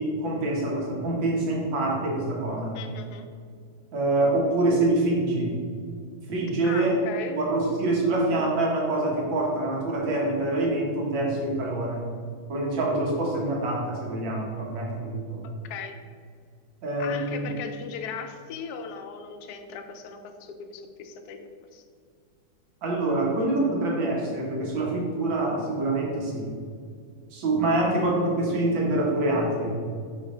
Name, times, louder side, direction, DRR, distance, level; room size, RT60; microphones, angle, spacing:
voice 1, 0.0-2.8 3.9-5.6 6.3-7.0 7.3-12.1 12.5-15.5 16.8-17.5 22.8-26.5 27.3-29.8, right 2 dB, 80° right, -2 dB, 2.0 m, -25 dB
voice 2, 2.7-3.3 6.6-7.4 15.4-16.0 17.0-21.8, left 6 dB, 70° left, 6 dB, 0.9 m, -38 dB
5.5 x 5.2 x 3.7 m, 2.1 s
omnidirectional pair, 2.1 m